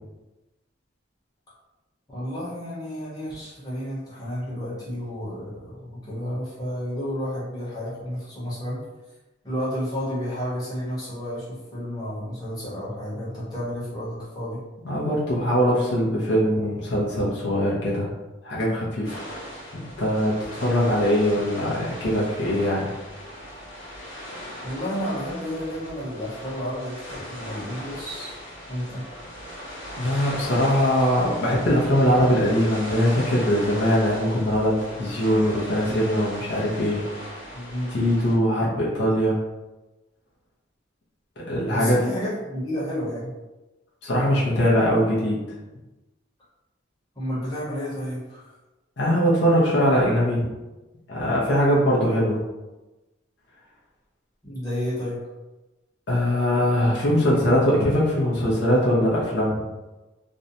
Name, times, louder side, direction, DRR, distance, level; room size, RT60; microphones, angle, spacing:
voice 1, 2.1-8.8 9.4-14.6 24.6-27.0 27.2-28.4 28.7-29.0 37.5-38.1 41.7-43.3 47.2-48.5 54.4-55.2, equal, 20° left, -9 dB, 0.9 m, -31 dB
voice 2, 14.8-18.1 18.4-19.2 19.7-22.9 30.0-37.0 37.9-39.4 41.4-42.0 44.0-45.4 49.0-50.5 51.1-52.4 56.1-59.6, equal, 65° left, -5 dB, 0.6 m, -21 dB
Seawash (calm), 19.0-38.3, equal, 80° left, 0.9 m, -38 dB
2.6 x 2.1 x 2.6 m, 1.1 s
head